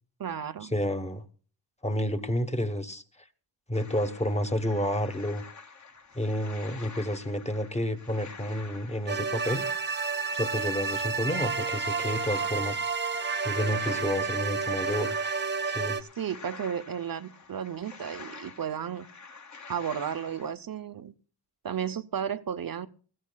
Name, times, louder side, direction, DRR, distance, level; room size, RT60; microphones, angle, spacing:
voice 1, 0.2-0.7 16.0-19.1 19.7-21.1 21.6-22.9, right 8 dB, 55° right, 10 dB, 0.7 m, -33 dB
voice 2, 0.7-1.2 1.8-3.0 3.7-5.4 6.1-9.6 10.3-12.8 13.4-15.1 15.6-16.0, equal, 15° left, 8 dB, 1.0 m, -30 dB
sound 1, 3.7-20.5, left 4 dB, 40° left, 1.4 m, -48 dB
sound 2, 9.1-16.0, right 5 dB, 25° right, 0.9 m, -30 dB
20.5 x 15.0 x 2.3 m, 0.41 s
wide cardioid pair, 140°, 42 cm